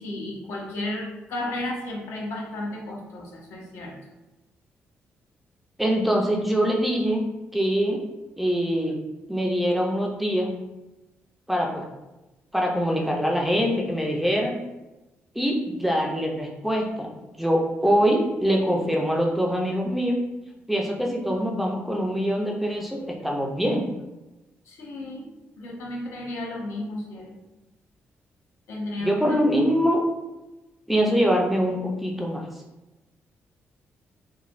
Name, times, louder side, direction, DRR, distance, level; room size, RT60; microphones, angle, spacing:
voice 1, 0.0-3.9 24.7-25.3 25.6-27.3 28.7-29.4, left 1 dB, 80° left, -1 dB, 0.7 m, -33 dB
voice 2, 5.8-8.0 8.4-9.0 9.3-10.6 11.5-11.9 12.5-14.6 15.4-17.1 17.4-20.2 20.7-23.9 29.0-30.1 30.9-32.4, equal, 5° right, 0 dB, 0.4 m, -24 dB
3.1 x 2.1 x 2.4 m, 1.0 s
cardioid pair, 120°, 5 cm